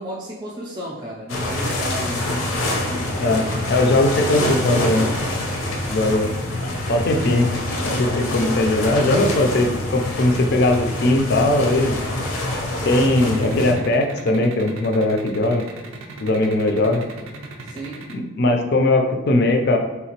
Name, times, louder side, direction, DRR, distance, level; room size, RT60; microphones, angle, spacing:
voice 1, 0.0-3.2 17.6-18.0, equal, 20° right, -5 dB, 0.4 m, -33 dB
sound 1, 1.3-13.7, left 1 dB, 85° left, 0.7 m, -25 dB
voice 2, 3.2-5.1 5.9-6.3 6.9-7.5 8.0-12.0 12.8-15.6 16.2-17.0 18.1-19.8, left 2 dB, 50° left, 5 dB, 0.4 m, -19 dB
sound 2, 12.8-18.1, right 3 dB, 80° right, 0.4 m, -37 dB
3.6 x 2.8 x 2.9 m, 1.1 s
head